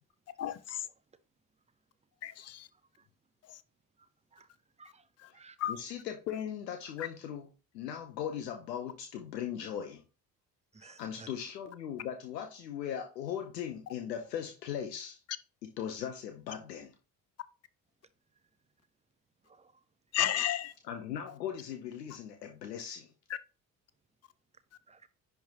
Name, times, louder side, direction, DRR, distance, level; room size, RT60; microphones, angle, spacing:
voice 1, 0.4-0.8 2.2-2.7 3.5-3.6 5.6-5.7 7.0-7.1 20.1-20.7, left 11 dB, 30° left, 0.6 m, -32 dB
voice 2, 2.4-3.1 4.0-4.5 4.8-5.6 10.7-11.3 19.4-19.8 24.9-25.1, right 4 dB, 15° right, 0.7 m, -58 dB
voice 3, 5.7-7.5 7.7-10.0 10.8-15.2 15.8-16.9 20.9-23.1, left 9 dB, 80° left, 0.8 m, -39 dB
10.0 x 3.4 x 2.8 m
figure-of-eight pair, 50°, 49 cm